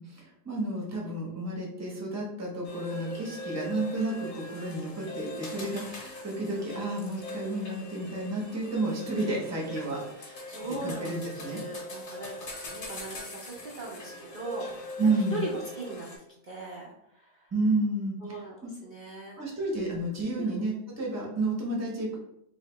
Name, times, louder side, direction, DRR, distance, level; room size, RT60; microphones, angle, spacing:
voice 1, 0.0-10.4 10.7-11.6 15.0-15.4 17.5-18.7 19.4-22.2, right 2 dB, 15° right, -2 dB, 0.6 m, -31 dB
sound 1, 2.6-16.2, left 1 dB, 45° left, 1.2 m, -41 dB
voice 2, 10.5-14.9 15.3-16.1 16.5-17.5 18.2-18.6 18.8-19.4 20.4-20.5, right 3 dB, 55° right, -5 dB, 0.5 m, -39 dB
3.2 x 2.8 x 4.4 m, 0.76 s
omnidirectional pair, 2.0 m